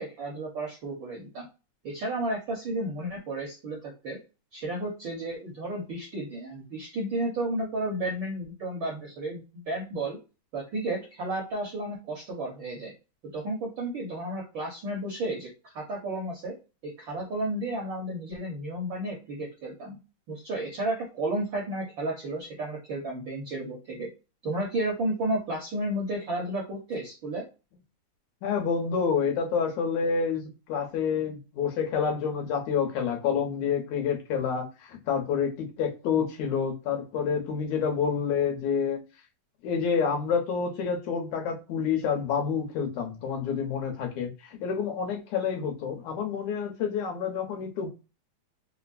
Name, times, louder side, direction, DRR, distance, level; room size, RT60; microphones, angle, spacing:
voice 1, 0.0-1.5 1.8-4.2 4.5-10.2 10.5-12.9 13.3-16.5 17.0-20.0 20.3-24.1 24.4-27.4, right 1 dB, 65° right, 1.2 m, -32 dB
voice 2, 28.4-39.0 39.6-47.9, left 6 dB, 75° left, 2.4 m, -28 dB
5.0 x 2.1 x 2.4 m
omnidirectional pair, 3.4 m